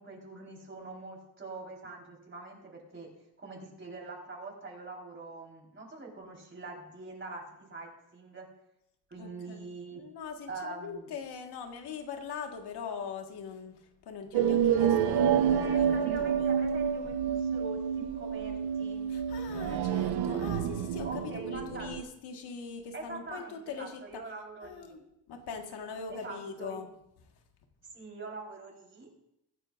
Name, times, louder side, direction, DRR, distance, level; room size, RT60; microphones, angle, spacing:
voice 1, 0.0-3.1 3.4-7.4 7.7-8.5 9.1-10.0 10.5-11.1 15.5-19.0 21.0-21.9 22.9-25.0 26.1-26.8 27.9-29.1, right 3 dB, 30° right, -1 dB, 4.1 m, -44 dB
voice 2, 9.2-9.6 9.9-15.9 16.2-16.6 19.1-24.2 24.6-26.9, left 6 dB, 75° left, 3 dB, 1.7 m, -42 dB
sound 1, 14.3-22.0, right 8 dB, 75° right, 0.8 m, -28 dB
22.0 x 10.0 x 2.5 m, 0.83 s
cardioid pair, 110°, 40 cm